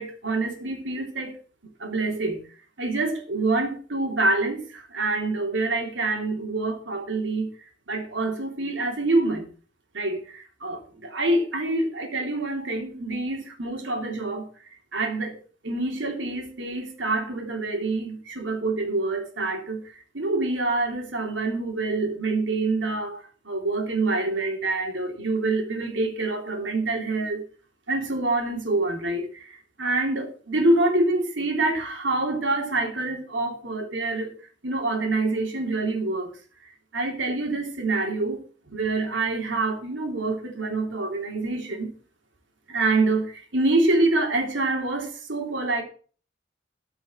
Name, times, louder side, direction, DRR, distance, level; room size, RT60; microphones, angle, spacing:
voice 1, 0.0-1.3 1.8-2.4 2.8-7.5 7.9-9.5 9.9-14.5 14.9-15.4 15.6-19.8 20.1-27.5 27.9-34.3 34.6-36.3 36.9-38.4 38.7-41.9 42.7-45.8, right 2 dB, 80° right, 3.2 m, -26 dB
14.0 x 6.1 x 6.1 m
head